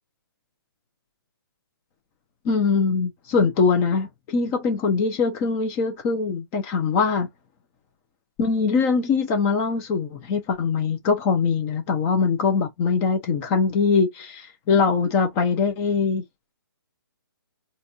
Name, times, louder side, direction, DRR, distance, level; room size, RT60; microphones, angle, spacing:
voice 1, 2.4-7.3 8.4-16.2, left 5 dB, 20° left, 0.6 m, -22 dB
4.1 x 2.5 x 2.6 m
hypercardioid pair, 150°, 12 cm